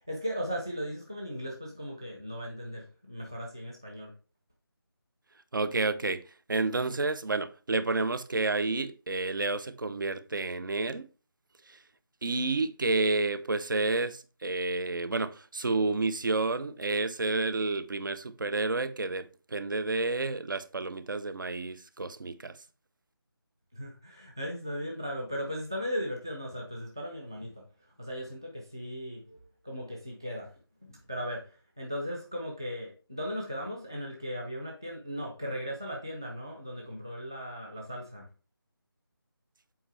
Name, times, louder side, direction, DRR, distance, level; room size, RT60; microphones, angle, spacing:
voice 1, 0.1-4.1 23.7-30.5 30.8-38.3, equal, 10° right, 0.3 m, -37 dB
voice 2, 5.5-6.2 6.5-11.1 12.2-22.5, right 3 dB, 55° right, 0.6 m, -30 dB
7.8 x 4.4 x 3.2 m
figure-of-eight pair, 170°, 12 cm